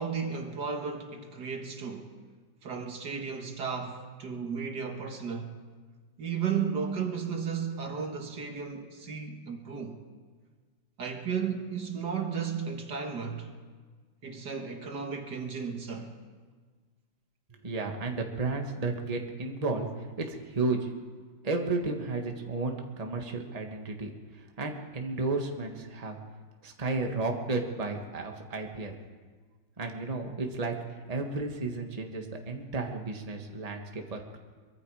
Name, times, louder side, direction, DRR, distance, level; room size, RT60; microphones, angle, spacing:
voice 1, 0.0-2.2 2.6-5.6 6.2-10.0 11.0-13.5 14.2-16.2, right 6 dB, 65° right, 2.2 m, -34 dB
voice 2, 17.6-19.9 20.2-20.9 21.4-24.1 24.6-26.2 26.6-29.0 29.8-30.8 31.1-34.4, right 3 dB, 20° right, 1.6 m, -33 dB
23.5 x 23.0 x 4.9 m
omnidirectional pair, 2.0 m